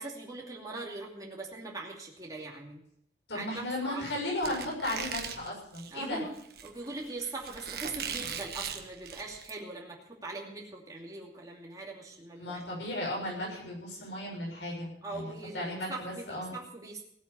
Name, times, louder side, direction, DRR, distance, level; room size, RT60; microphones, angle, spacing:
voice 1, 0.0-2.8 3.3-3.5 3.8-4.0 5.9-12.6 15.0-17.0, right 2 dB, 20° right, -2 dB, 2.7 m, -41 dB
voice 2, 3.3-6.2 12.3-16.5, left 1 dB, 80° left, -2 dB, 6.7 m, -35 dB
Squeak, 4.4-9.5, right 7 dB, 55° right, 1.5 m, -40 dB
17.5 x 8.7 x 6.9 m, 0.70 s
head